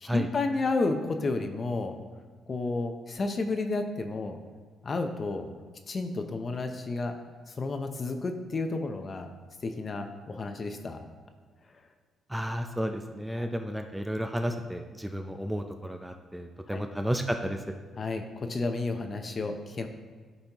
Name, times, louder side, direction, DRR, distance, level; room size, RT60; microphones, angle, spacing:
voice 1, 0.0-2.0 2.5-4.4 4.8-5.5 5.9-7.1 7.6-9.3 9.6-11.0 16.7-16.9 18.0-19.9, left 3 dB, 40° left, 6 dB, 0.7 m, -31 dB
voice 2, 12.3-17.6, equal, 5° right, 5 dB, 0.5 m, -32 dB
11.5 x 4.2 x 3.0 m, 1.5 s
cardioid pair, 90°, 0 cm